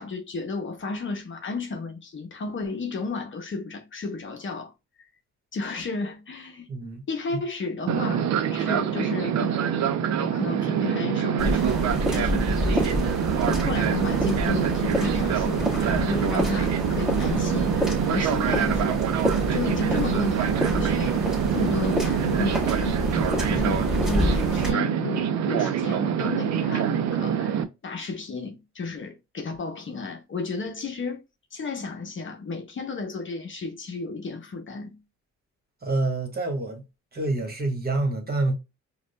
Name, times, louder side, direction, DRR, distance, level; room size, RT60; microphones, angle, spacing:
voice 1, 0.0-4.7 5.5-6.7 7.1-9.7 10.2-13.2 13.6-19.0 19.5-21.2 21.5-31.2 31.5-35.0, left 3 dB, 40° left, 0.9 m, -33 dB
voice 2, 6.7-7.0 35.8-36.8 37.1-38.5, right 2 dB, 30° right, 1.6 m, -27 dB
Fixed-wing aircraft airplane, 7.9-27.6, right 8 dB, 65° right, 0.6 m, -25 dB
sound 1, 11.4-24.7, left 1 dB, ahead, 1.7 m, -29 dB
5.1 x 2.4 x 2.2 m
cardioid pair, 90°, 30 cm